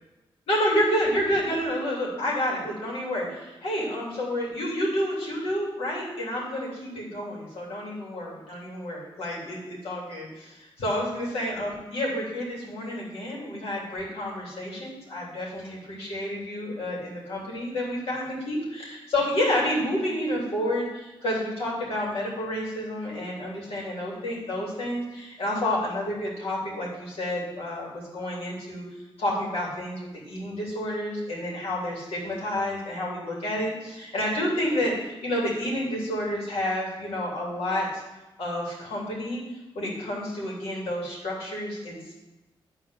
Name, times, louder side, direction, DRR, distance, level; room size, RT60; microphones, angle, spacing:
voice 1, 0.5-28.9 29.2-38.0 38.4-39.4 39.7-42.1, left 1 dB, 85° left, -4 dB, 3.0 m, -29 dB
10.5 x 4.2 x 6.3 m, 1.0 s
wide cardioid pair, 165°, 9 cm